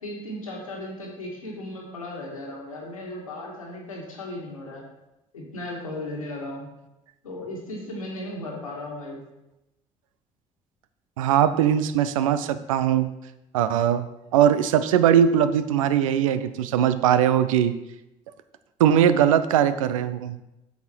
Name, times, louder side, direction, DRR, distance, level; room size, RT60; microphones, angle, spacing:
voice 1, 0.0-4.8 5.3-6.7 7.2-9.2, left 1 dB, 85° left, -1 dB, 1.8 m, -36 dB
voice 2, 11.2-13.1 13.5-14.1 14.3-17.7 18.8-20.4, right 9 dB, 75° right, 13 dB, 0.5 m, -20 dB
8.1 x 7.1 x 4.5 m, 0.92 s
figure-of-eight pair, 55°, 17 cm